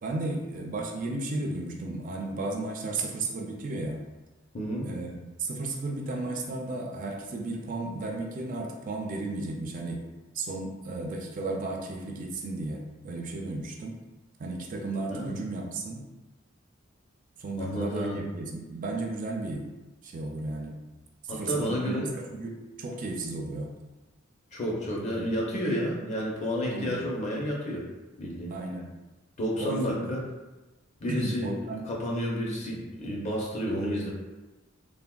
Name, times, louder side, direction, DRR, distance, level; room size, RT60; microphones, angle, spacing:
voice 1, 0.0-4.0 4.8-10.0 10.3-14.0 14.4-16.0 17.4-19.7 20.0-20.8 21.2-23.7 26.7-27.0 28.5-28.9 29.6-30.1 31.1-31.8, right 2 dB, 40° right, 0 dB, 0.3 m, -34 dB
voice 2, 4.5-4.9 15.1-15.4 17.6-18.2 21.3-22.1 24.5-27.9 28.2-28.5 29.4-30.2 31.0-31.5 31.9-34.1, equal, 35° left, -3 dB, 0.6 m, -30 dB
3.4 x 2.1 x 2.2 m, 1.1 s
head